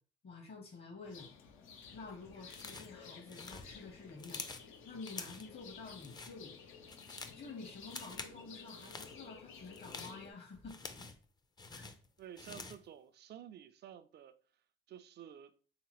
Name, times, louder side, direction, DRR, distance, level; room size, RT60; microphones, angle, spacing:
voice 1, 0.2-1.3 1.9-4.4 4.9-6.5 7.2-10.8 11.7-11.8, left 3 dB, 55° left, 1.0 m, -50 dB
sound 1, 1.0-10.3, left 6 dB, 85° left, 0.6 m, -54 dB
sound 2, 2.5-3.0 3.3-4.7 5.1-5.5 5.9-6.4 6.7-7.4 7.8-8.4 8.7-9.1 9.6-11.3 11.6-12.9, left 3 dB, 20° left, 0.4 m, -48 dB
voice 2, 12.2-14.4 14.9-15.5, right 10 dB, 55° right, 0.4 m, -52 dB
3.4 x 2.9 x 2.9 m
cardioid pair, 90°, 20 cm